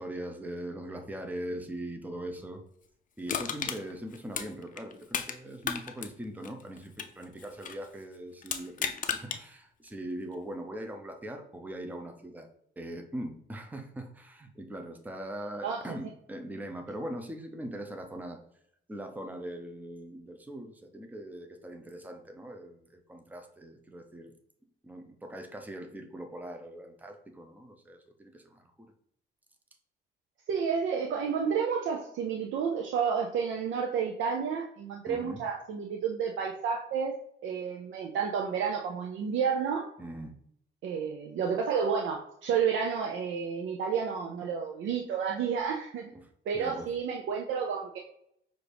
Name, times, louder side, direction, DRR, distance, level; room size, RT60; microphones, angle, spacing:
voice 1, 0.0-2.6 3.2-12.5 12.8-18.4 18.9-24.3 24.8-28.7 35.1-35.4 40.0-40.4 46.1-46.3 46.5-46.9, right 1 dB, 10° right, 4 dB, 0.6 m, -41 dB
Crushing, 3.3-5.4 5.6-7.9 8.4-9.4 9.9-10.0, left 7 dB, 40° left, 0.5 m, -34 dB
voice 2, 30.5-37.1 37.4-39.9 40.8-46.1 46.5-48.0, right 6 dB, 75° right, 0 dB, 0.6 m, -30 dB
5.9 x 2.6 x 3.4 m, 0.71 s
cardioid pair, 90°, 20 cm